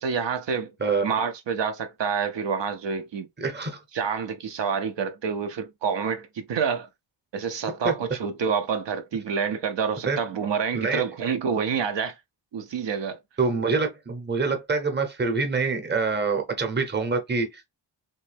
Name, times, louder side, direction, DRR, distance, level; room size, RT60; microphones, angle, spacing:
voice 1, 0.0-0.7 1.0-3.3 3.9-6.9 7.3-12.2 12.5-13.2, right 6 dB, 70° right, 0.7 m, -28 dB
voice 2, 3.4-3.8 7.8-7.9 10.0-10.2 10.7-11.0 13.4-17.6, right 4 dB, 25° right, 0.8 m, -25 dB
3.2 x 3.1 x 3.3 m
wide cardioid pair, 160°, 45 cm